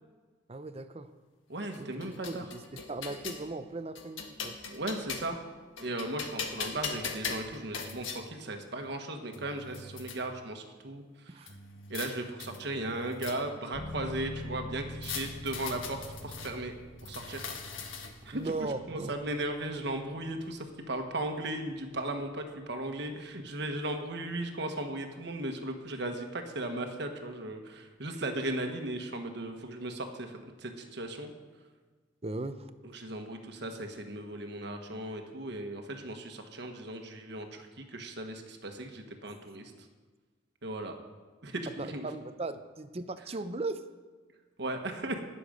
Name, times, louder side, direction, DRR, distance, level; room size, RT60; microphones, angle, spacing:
voice 1, 0.5-1.1 1.8-2.0 2.3-4.6 11.3-11.5 18.3-19.2 32.2-32.7 41.8-43.8, right 2 dB, 30° right, 11 dB, 0.6 m, -38 dB
voice 2, 1.5-2.4 4.7-5.4 5.8-11.5 11.9-16.7 17.0-17.5 18.2-18.5 18.9-31.3 32.8-39.9 40.6-40.9 41.4-42.1 44.6-45.2, right 1 dB, 60° right, 5 dB, 1.4 m, -37 dB
sound 1, 1.7-3.4 4.0-5.4 5.8-8.2 9.0-9.1 9.3-10.2 11.5-12.1 12.4-13.7 15.0-16.5 17.0-18.3, left 5 dB, 85° left, 1.5 m, -40 dB
sound 2, 13.7-24.3, left 1 dB, 60° left, 1.1 m, -46 dB
19.0 x 6.9 x 5.1 m, 1.4 s
head